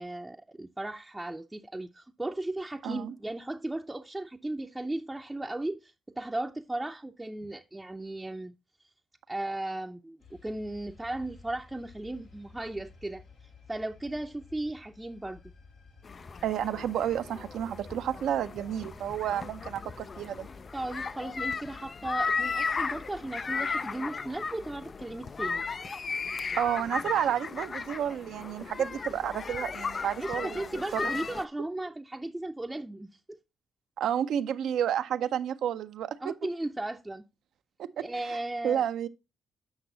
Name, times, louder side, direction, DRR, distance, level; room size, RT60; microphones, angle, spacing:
voice 1, 0.0-8.5 9.3-15.4 20.7-25.6 30.2-33.4 36.2-37.2 38.0-38.9, right 2 dB, 15° right, 0.6 m, -36 dB
voice 2, 2.8-3.1 16.4-20.5 26.6-31.0 34.0-36.3 37.8-38.4 38.6-39.1, right 10 dB, 75° right, 0.5 m, -31 dB
sound 1, 10.2-25.9, left 3 dB, 85° left, 2.4 m, -54 dB
sound 2, 16.0-31.4, left 5 dB, 45° left, 0.4 m, -35 dB
8.0 x 6.0 x 3.9 m
supercardioid pair, 55°, 0 cm